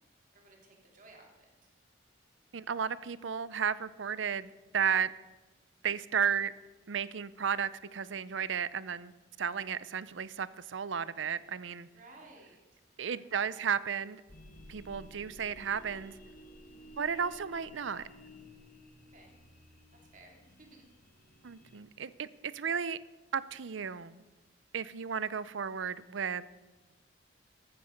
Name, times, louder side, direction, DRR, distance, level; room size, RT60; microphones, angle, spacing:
voice 1, 0.3-1.7 11.9-13.6 16.6-17.0 19.1-19.3 20.0-20.9, right 2 dB, 45° right, 0 dB, 3.1 m, -58 dB
voice 2, 2.5-5.1 5.8-6.5 6.9-9.1 9.4-11.9 13.0-14.2 14.7-16.2 17.0-18.0 21.4-23.0 23.3-24.2 24.7-26.6, right 7 dB, 85° right, 17 dB, 0.6 m, -34 dB
sound 1, 14.3-21.8, left 1 dB, 45° left, 1.3 m, -56 dB
sound 2, 14.3-21.4, equal, 25° left, 2.1 m, -58 dB
14.5 x 12.5 x 5.3 m, 1.2 s
head